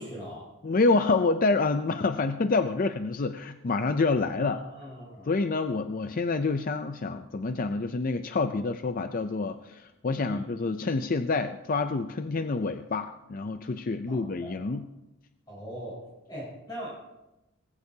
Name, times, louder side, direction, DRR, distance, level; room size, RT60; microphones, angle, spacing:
voice 1, 0.0-0.5 4.2-5.4 10.2-10.5 14.1-14.6 15.5-17.0, equal, 20° left, -7 dB, 4.8 m, -41 dB
voice 2, 0.6-4.6 5.3-14.9, left 3 dB, 40° left, 9 dB, 0.5 m, -27 dB
19.5 x 15.0 x 2.8 m, 0.95 s
head